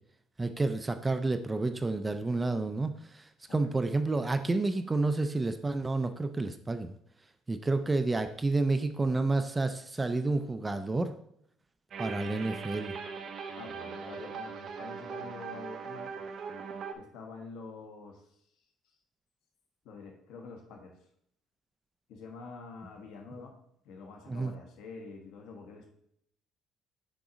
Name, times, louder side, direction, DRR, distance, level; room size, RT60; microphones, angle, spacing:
voice 1, 0.4-7.0 7.5-11.1 12.0-13.0 24.3-24.5, right 3 dB, 15° right, 8 dB, 0.4 m, -30 dB
sound 1, 11.9-16.9, right 5 dB, 45° right, 0.7 m, -40 dB
voice 2, 13.5-16.1 16.9-18.3 19.8-21.0 22.1-23.6 23.8-25.9, left 4 dB, 80° left, 3 dB, 1.4 m, -46 dB
6.1 x 4.0 x 5.1 m, 0.70 s
cardioid pair, 145°, 0 cm